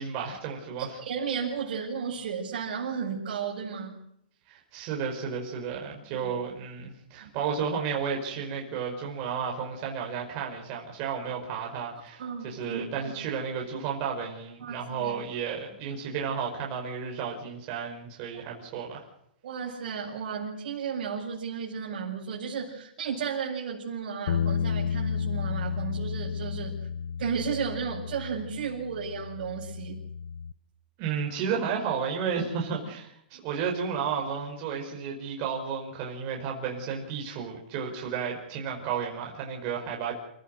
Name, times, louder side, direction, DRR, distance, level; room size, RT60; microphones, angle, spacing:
voice 1, 0.0-1.0 4.5-19.0 31.0-40.1, right 6 dB, 35° right, 0 dB, 5.2 m, -32 dB
voice 2, 0.8-4.0 7.2-7.3 12.2-13.1 14.6-15.2 19.4-26.8 27.2-30.0, right 6 dB, 65° right, -6 dB, 6.4 m, -34 dB
sound 1, 24.3-30.5, left 7 dB, 70° left, 0.8 m, -32 dB
28.5 x 15.5 x 6.5 m, 0.73 s
hypercardioid pair, 150°, 5 cm